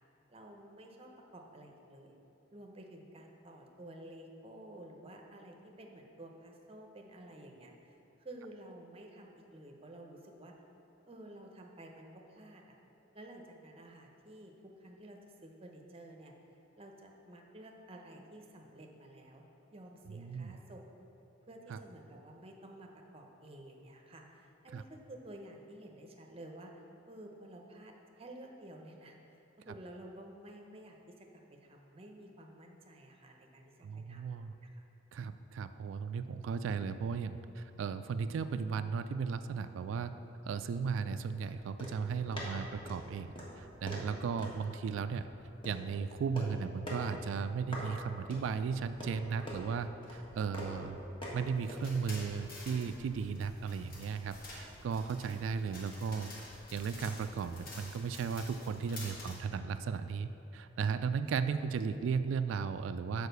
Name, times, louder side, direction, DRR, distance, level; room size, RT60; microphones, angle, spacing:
voice 1, 0.3-2.2 2.5-10.6 11.1-12.8 13.1-16.3 16.8-19.4 19.7-20.9 21.5-27.9 28.2-34.4 34.7-34.8, right 1 dB, 30° right, 2 dB, 0.7 m, -52 dB
voice 2, 20.1-20.6 21.7-21.8 24.7-24.8 33.8-34.5 35.1-40.1 40.4-45.3 45.6-51.0 51.3-56.3 56.7-63.3, right 5 dB, 80° right, 12 dB, 0.3 m, -36 dB
sound 1, 41.4-55.6, equal, 25° left, 1.4 m, -47 dB
sound 2, 51.5-59.4, left 2 dB, 50° left, 1.5 m, -50 dB
6.4 x 4.8 x 6.7 m, 2.9 s
head